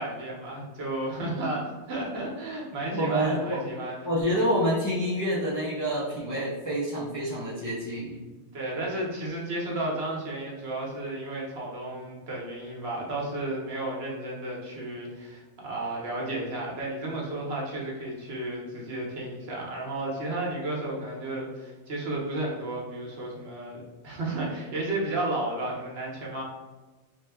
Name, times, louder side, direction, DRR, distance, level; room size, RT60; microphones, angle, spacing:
voice 1, 0.0-4.1 8.5-26.4, right 2 dB, 65° right, -3 dB, 1.0 m, -33 dB
voice 2, 3.0-3.6 4.0-8.2, equal, 25° left, -7 dB, 0.4 m, -27 dB
2.9 x 2.1 x 3.3 m, 1.2 s
omnidirectional pair, 1.2 m